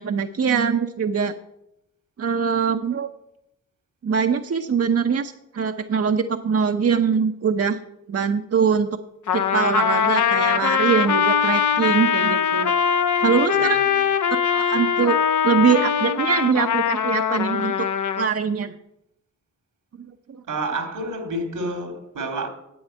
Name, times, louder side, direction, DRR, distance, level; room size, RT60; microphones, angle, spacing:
voice 1, 0.0-1.3 2.2-3.1 4.0-7.8 8.1-8.9 9.3-12.7 13.2-13.8 14.5-15.2 15.4-17.9 18.2-18.7 20.0-20.4, right 6 dB, 50° right, 0.8 m, -22 dB
Trumpet, 9.3-18.3, left 7 dB, 70° left, 0.8 m, -21 dB
voice 2, 13.5-14.1 20.5-22.5, right 2 dB, 80° right, 2.4 m, -29 dB
8.7 x 8.0 x 9.0 m
cardioid pair, 50°, 31 cm